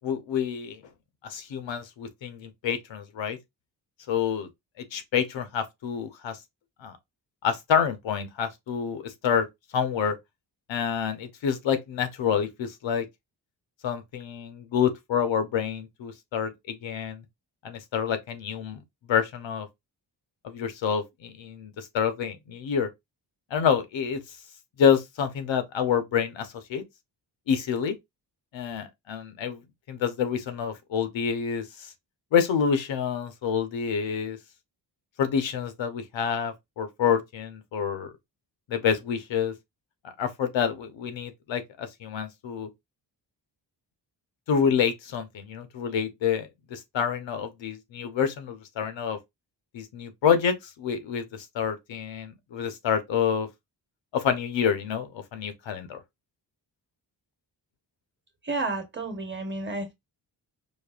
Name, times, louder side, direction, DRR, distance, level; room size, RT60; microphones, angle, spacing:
voice 1, 0.0-0.8 1.2-3.4 4.1-4.5 4.9-6.4 6.8-6.9 7.4-9.5 9.7-10.2 10.7-13.1 13.8-17.2 17.6-18.8 19.1-19.7 20.4-22.9 23.5-24.2 24.8-26.8 27.5-27.9 28.5-29.6 29.9-31.9 32.3-34.4 35.2-38.1 38.7-39.5 40.0-42.7 44.5-49.2 49.7-53.5 54.1-56.0, left 7 dB, 90° left, 0.9 m, -27 dB
voice 2, 58.4-59.9, right 3 dB, 25° right, 1.1 m, -31 dB
5.2 x 2.1 x 2.4 m
cardioid pair, 100°, 44 cm